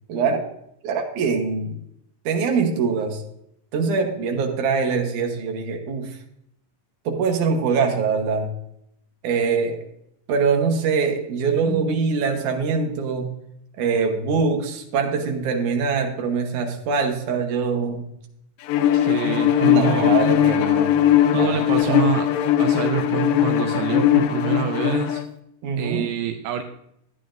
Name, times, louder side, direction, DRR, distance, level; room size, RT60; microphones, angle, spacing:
voice 1, 0.1-0.4 0.8-1.8 2.3-3.2 3.7-6.2 7.1-8.5 9.2-9.8 10.3-13.3 13.8-18.1 19.6-21.0 21.3-22.0 25.6-26.1, right 5 dB, 70° right, 2 dB, 2.5 m, -23 dB
Bowed string instrument, 18.7-25.3, left 11 dB, 85° left, 2.3 m, -19 dB
voice 2, 18.9-20.2 21.3-22.3 22.6-25.2 25.8-26.6, right 9 dB, 85° right, 4 dB, 2.3 m, -26 dB
14.0 x 9.3 x 2.5 m, 0.76 s
omnidirectional pair, 3.8 m